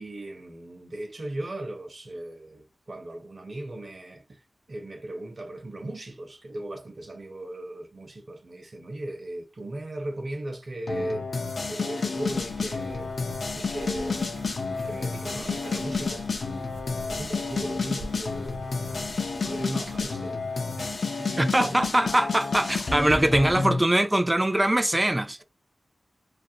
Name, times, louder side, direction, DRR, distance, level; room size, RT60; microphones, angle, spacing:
voice 1, 0.0-4.4 4.7-11.3 11.6-13.1 13.6-16.6 17.0-19.1 19.4-22.1, right 1 dB, 50° right, 0.7 m, -38 dB
sound 1, 10.9-23.8, left 4 dB, 70° left, 0.5 m, -30 dB
sound 2, 12.1-20.1, right 1 dB, 90° right, 0.7 m, -45 dB
voice 2, 21.4-25.4, right 1 dB, 20° right, 0.3 m, -22 dB
2.4 x 2.0 x 2.6 m
cardioid pair, 60°, 0 cm